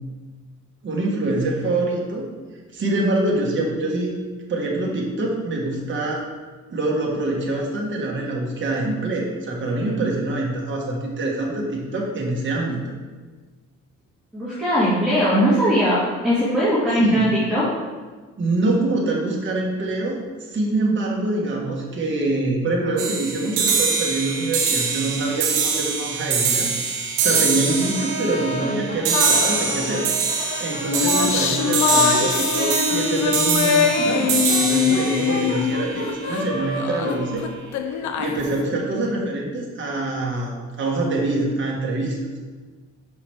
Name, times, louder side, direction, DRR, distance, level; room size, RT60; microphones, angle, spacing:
voice 1, 0.8-2.3 2.7-4.1 4.5-6.2 6.7-12.9 17.0-17.3 18.4-30.0 30.4-37.4 37.8-42.2, right 2 dB, 40° right, -2 dB, 1.3 m, -25 dB
voice 2, 14.3-17.6 28.4-28.9, equal, ahead, -10 dB, 1.8 m, -20 dB
sound 1, 23.0-36.4, right 5 dB, 85° right, 0.8 m, -24 dB
Brass instrument, 27.2-33.0 33.6-38.3, equal, 30° left, 1.5 m, -33 dB
sound 2, 29.1-30.0 30.6-36.4 36.8-38.6, left 7 dB, 70° left, 0.5 m, -23 dB
6.0 x 4.8 x 3.3 m, 1.4 s
cardioid pair, 90°, 30 cm